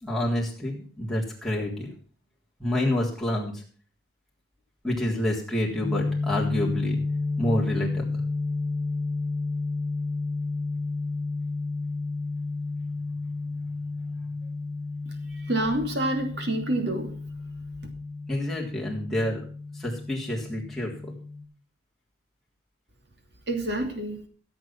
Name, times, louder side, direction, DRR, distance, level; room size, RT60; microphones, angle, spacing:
voice 1, 0.0-1.9 2.6-3.5 4.8-7.0 7.4-8.1 18.3-19.4 19.7-21.2, left 1 dB, ahead, -5 dB, 3.6 m, -28 dB
sound 1, 5.8-21.4, left 3 dB, 40° right, 4.8 m, -31 dB
voice 2, 15.3-17.1 23.5-24.2, right 1 dB, 60° right, 4 dB, 2.9 m, -27 dB
15.0 x 8.1 x 6.0 m, 0.42 s
head